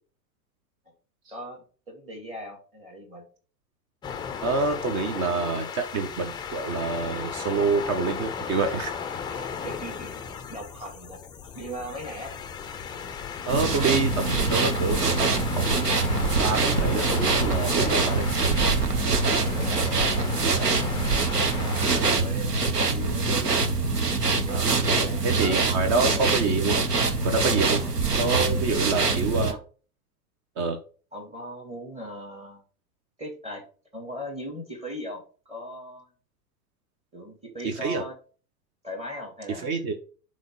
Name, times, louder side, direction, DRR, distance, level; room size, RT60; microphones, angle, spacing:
voice 1, 1.3-3.2 9.2-10.1 10.5-11.2 11.5-12.3 19.4-23.6 24.4-25.6 25.9-26.2 27.7-27.9 28.8-29.6 31.1-32.6 33.2-33.6 33.9-36.1 37.1-38.1 38.8-39.8, equal, 15° right, 1 dB, 2.3 m, -39 dB
sound 1, 4.0-22.0, left 7 dB, 10° left, 0.4 m, -35 dB
voice 2, 4.4-8.9 13.5-16.0 16.4-18.3 24.5-24.7 25.2-26.8 27.2-27.8 28.1-29.6 30.6-30.8 37.6-38.0 39.6-39.9, right 4 dB, 35° right, 6 dB, 1.2 m, -27 dB
sound 2, 13.5-29.5, right 3 dB, 85° right, 1.0 m, -24 dB
sound 3, 15.8-22.0, right 5 dB, 55° right, 1.5 m, -40 dB
7.6 x 3.3 x 5.3 m, 0.38 s
figure-of-eight pair, 90°, 46 cm